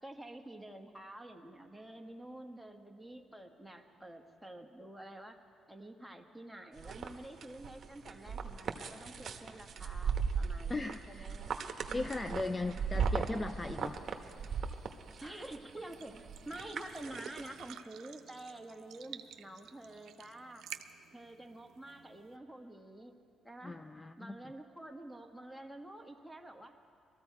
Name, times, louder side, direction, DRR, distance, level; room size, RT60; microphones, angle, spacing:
voice 1, 0.0-5.4 5.7-11.6 12.6-13.1 15.1-20.6 21.1-23.1 23.4-23.8 24.2-26.7, right 1 dB, ahead, 3 dB, 1.3 m, -49 dB
sound 1, 6.8-17.7, right 6 dB, 55° right, 1.0 m, -38 dB
voice 2, 10.7-11.3 11.9-14.0 23.6-24.4, left 2 dB, 20° left, 10 dB, 0.4 m, -38 dB
sound 2, 13.8-22.4, right 10 dB, 80° right, 0.5 m, -53 dB
22.0 x 14.0 x 4.6 m, 2.4 s
cardioid pair, 90°, 0 cm